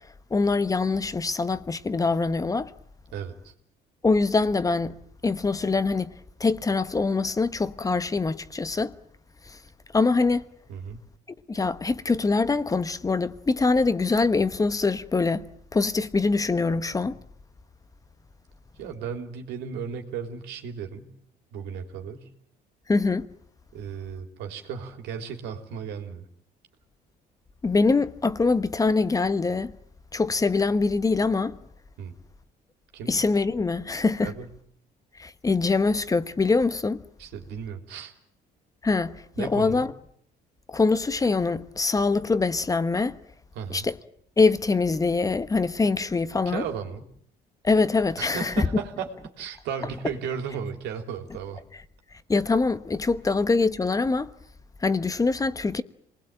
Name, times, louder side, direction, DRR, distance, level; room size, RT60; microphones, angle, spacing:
voice 1, 0.3-2.7 4.0-5.0 5.2-6.1 6.4-8.9 9.5-9.6 9.9-10.4 11.5-15.4 15.7-17.2 22.9-23.3 27.6-29.7 30.1-31.6 33.1-34.3 35.2-37.0 38.8-39.9 40.7-43.2 43.7-43.9 44.4-46.6 47.6-48.7 52.3-54.3 54.8-55.8, left 3 dB, 20° left, 1.1 m, -24 dB
voice 2, 3.1-3.5 10.7-11.0 18.8-21.1 21.5-22.3 23.7-26.3 32.0-32.1 32.9-33.2 34.2-34.5 37.2-38.1 39.4-39.9 43.6-43.9 46.5-47.1 48.2-49.1 49.4-51.6, right 7 dB, 85° right, 3.5 m, -35 dB
26.5 x 20.5 x 9.1 m
cardioid pair, 110°, 17 cm